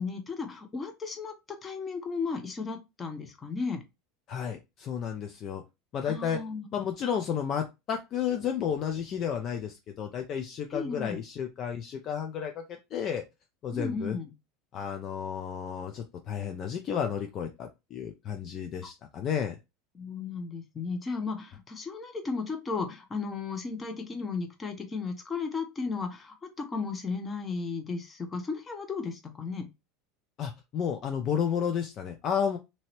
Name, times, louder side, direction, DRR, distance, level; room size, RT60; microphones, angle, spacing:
voice 1, 0.0-3.8 6.0-6.7 10.7-11.2 13.7-14.3 19.9-29.7, left 4 dB, 25° left, 0.9 m, -35 dB
voice 2, 4.3-5.6 5.9-6.4 6.7-13.2 13.6-14.2 14.7-19.6 30.4-32.6, left 8 dB, 45° left, 0.5 m, -32 dB
2.9 x 2.7 x 3.0 m
hypercardioid pair, 95°, 0 cm